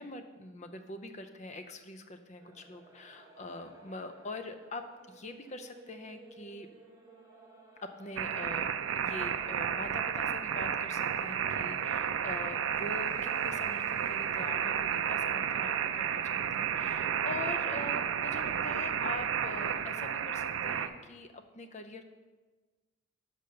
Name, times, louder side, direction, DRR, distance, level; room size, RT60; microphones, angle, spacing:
voice 1, 0.0-6.7 7.8-22.0, left 2 dB, 35° left, 8 dB, 0.6 m, -44 dB
sound 1, 2.4-19.9, right 2 dB, 15° right, 1.2 m, -58 dB
sound 2, 8.2-20.9, right 8 dB, 65° right, 0.4 m, -32 dB
6.9 x 5.2 x 6.6 m, 1.3 s
head